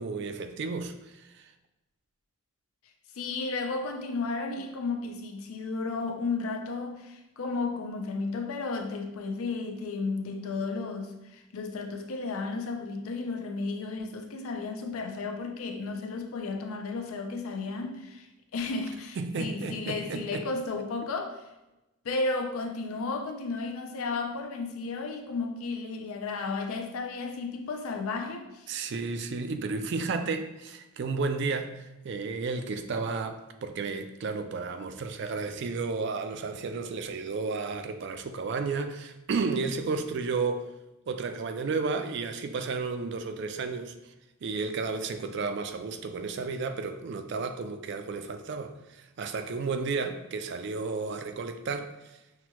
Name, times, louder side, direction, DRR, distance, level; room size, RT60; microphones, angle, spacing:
voice 1, 0.0-1.5 19.2-20.5 28.7-40.7 41.1-44.0 44.4-52.2, right 4 dB, 55° right, 0.3 m, -32 dB
voice 2, 3.1-18.3 18.5-21.4 22.0-28.7, left 3 dB, 80° left, 0.5 m, -33 dB
5.8 x 2.3 x 2.9 m
head